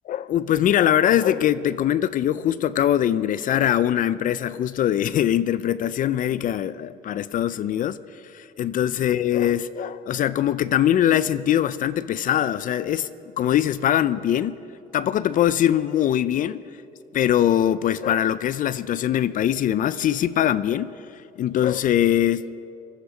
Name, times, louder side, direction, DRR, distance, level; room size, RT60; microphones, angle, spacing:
voice 1, 0.1-8.0 8.3-13.1 13.4-14.6 14.9-16.6 17.1-20.9 21.4-22.4, left 11 dB, 50° left, 15 dB, 0.5 m, -22 dB
22.0 x 12.0 x 5.0 m, 2.6 s
cardioid pair, 110°, 17 cm